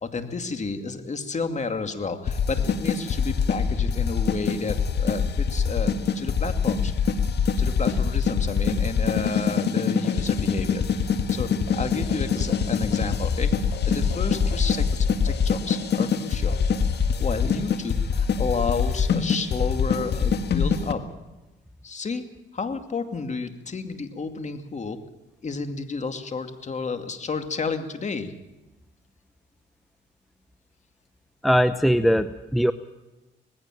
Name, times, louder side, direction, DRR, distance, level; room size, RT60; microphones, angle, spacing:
voice 1, 0.0-6.9 7.6-16.6 17.0-21.0 21.8-22.2 22.5-25.0 25.4-28.3, left 4 dB, 35° left, 7 dB, 2.4 m, -31 dB
sound 1, 2.3-20.9, left 6 dB, 60° left, 1.8 m, -24 dB
voice 2, 31.4-32.7, equal, ahead, 11 dB, 0.8 m, -20 dB
20.0 x 16.0 x 9.1 m, 1.0 s
cardioid pair, 90°, 20 cm